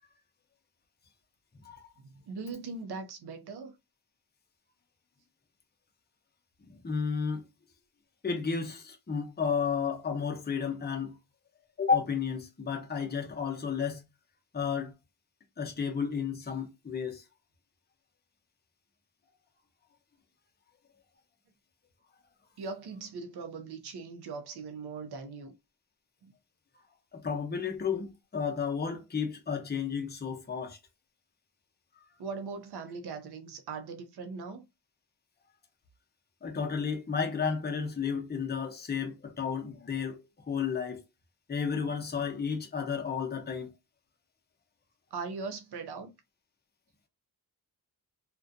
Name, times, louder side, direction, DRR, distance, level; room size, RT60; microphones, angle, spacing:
voice 1, 2.0-3.8 22.6-25.5 26.2-26.3 32.2-34.6 45.1-46.1, right 4 dB, 70° right, 0.6 m, -40 dB
voice 2, 6.6-7.4 8.2-11.2 11.8-14.0 14.5-14.9 15.6-17.2 27.1-30.8 36.4-40.2 40.5-41.0 41.5-43.7, left 6 dB, 25° left, 0.6 m, -32 dB
2.4 x 2.2 x 2.5 m
cardioid pair, 65°, 41 cm